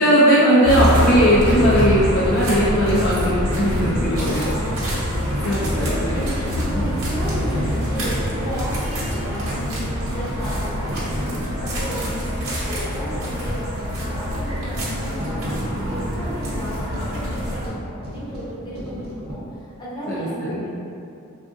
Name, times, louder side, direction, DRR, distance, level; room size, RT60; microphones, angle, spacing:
voice 1, 0.0-4.5 5.4-6.2 6.6-6.9 20.1-20.7, equal, 45° left, -7 dB, 0.3 m, -18 dB
sound 1, 0.6-17.7, equal, 60° right, 0.8 m, -25 dB
sound 2, 3.5-19.3, equal, 45° right, 0.5 m, -34 dB
voice 2, 4.4-11.0 11.4-20.7, right 1 dB, 20° left, -9 dB, 0.7 m, -34 dB
3.5 x 2.3 x 2.5 m, 2.6 s
head